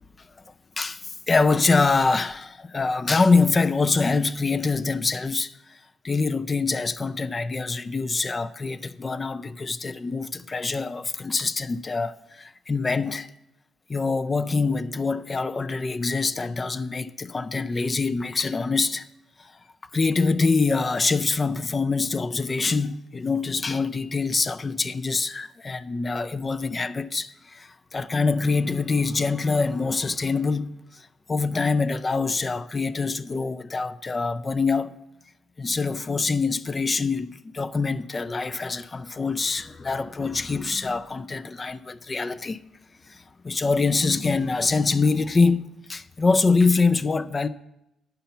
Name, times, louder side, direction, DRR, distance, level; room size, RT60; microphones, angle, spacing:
voice 1, 0.8-5.5 6.0-13.3 13.9-19.0 19.9-31.0 31.3-35.0 35.6-42.6 43.1-47.5, left 4 dB, 30° left, 0.4 m, -24 dB
9.2 x 5.7 x 6.8 m
cardioid pair, 90°, 0 cm